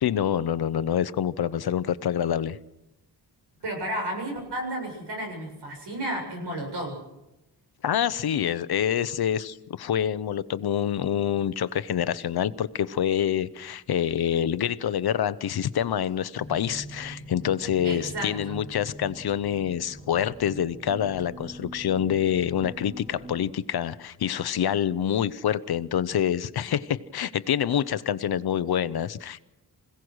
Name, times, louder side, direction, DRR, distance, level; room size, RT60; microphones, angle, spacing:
voice 1, 0.0-2.6 7.8-29.4, left 9 dB, 65° left, 0.8 m, -26 dB
voice 2, 3.6-7.0 17.8-18.6, right 1 dB, 80° right, 7.3 m, -32 dB
sound 1, 16.3-23.3, equal, 5° right, 4.4 m, -43 dB
26.5 x 17.0 x 6.3 m
wide cardioid pair, 175°, 40 cm